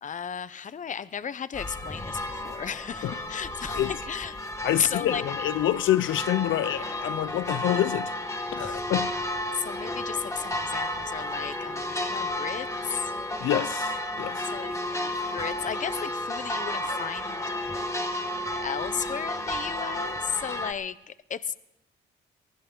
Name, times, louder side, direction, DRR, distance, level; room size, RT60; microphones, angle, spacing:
voice 1, 0.0-4.4 4.7-5.2 8.6-8.9 9.5-13.1 14.4-14.8 15.3-17.9 18.5-21.6, left 8 dB, 40° left, 0.7 m, -34 dB
sound 1, 1.5-20.7, left 1 dB, 15° left, 1.7 m, -32 dB
voice 2, 4.6-8.1 8.5-9.1 13.4-14.5, left 13 dB, 75° left, 0.6 m, -27 dB
23.5 x 15.0 x 3.9 m
cardioid pair, 90°, 20 cm